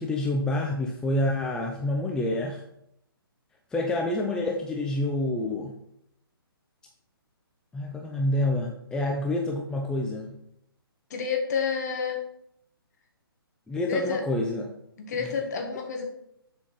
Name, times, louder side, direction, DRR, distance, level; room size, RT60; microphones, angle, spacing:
voice 1, 0.0-2.6 3.7-5.8 7.7-10.3 13.7-14.7 15.2-15.3, left 1 dB, 5° left, 0 dB, 0.5 m, -28 dB
voice 2, 11.1-12.2 13.9-14.2 15.0-16.1, left 6 dB, 45° left, 3 dB, 1.7 m, -29 dB
7.3 x 4.3 x 5.5 m, 0.76 s
figure-of-eight pair, 140°, 13 cm